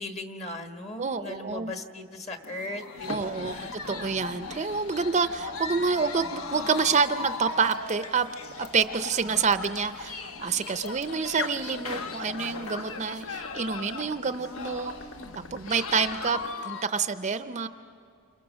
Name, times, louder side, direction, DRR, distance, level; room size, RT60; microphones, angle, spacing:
voice 1, 0.0-3.7, left 2 dB, 30° left, 5 dB, 1.5 m, -38 dB
voice 2, 1.0-1.7 3.1-3.5 3.9-8.3 8.6-14.9 15.5-17.7, right 5 dB, 35° right, 10 dB, 0.5 m, -27 dB
sound 1, 2.4-16.8, left 4 dB, 90° left, 1.3 m, -38 dB
sound 2, 3.0-16.6, left 4 dB, 60° left, 0.8 m, -46 dB
30.0 x 27.0 x 6.3 m, 2.4 s
head